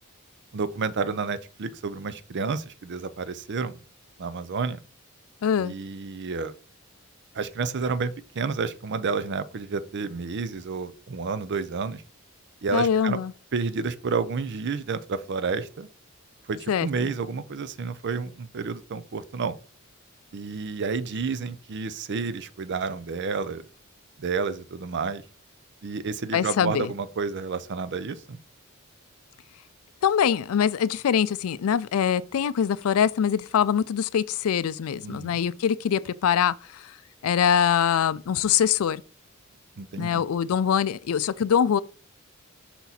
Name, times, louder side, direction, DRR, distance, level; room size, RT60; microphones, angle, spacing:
voice 1, 0.5-3.8 4.2-4.8 5.6-6.5 7.3-12.0 12.6-13.2 13.5-15.9 16.5-19.6 20.3-23.6 24.2-25.2 25.8-28.4 35.0-35.4 39.8-40.2, right 4 dB, 55° right, 0.5 m, -30 dB
voice 2, 5.4-5.7 12.7-13.3 16.7-16.9 26.3-26.9 30.0-36.9 37.2-39.0 40.0-41.8, left 8 dB, 80° left, 0.4 m, -23 dB
5.9 x 4.0 x 4.2 m
head